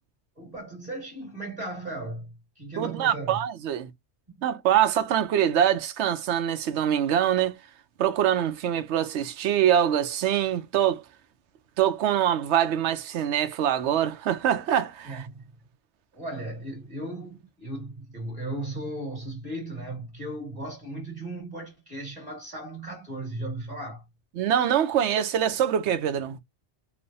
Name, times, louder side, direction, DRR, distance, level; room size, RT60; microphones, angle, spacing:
voice 1, 0.4-3.4 15.0-15.5 16.1-24.0, right 1 dB, 35° right, 1.6 m, -36 dB
voice 2, 2.8-3.9 4.4-7.6 8.0-11.0 11.8-15.3 24.4-26.4, right 10 dB, 80° right, 0.9 m, -24 dB
3.1 x 2.0 x 2.6 m
omnidirectional pair, 1.2 m